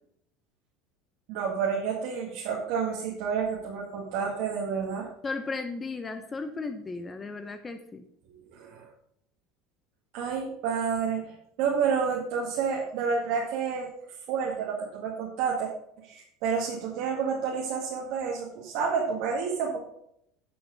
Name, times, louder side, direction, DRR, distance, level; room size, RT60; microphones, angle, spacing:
voice 1, 1.3-5.1 8.5-8.9 10.1-13.9 14.3-15.7 16.1-19.8, right 6 dB, 65° right, -3 dB, 2.1 m, -29 dB
voice 2, 5.2-8.0, left 3 dB, 25° left, 8 dB, 1.0 m, -35 dB
10.5 x 6.1 x 5.3 m, 0.72 s
hypercardioid pair, 90°, 0 cm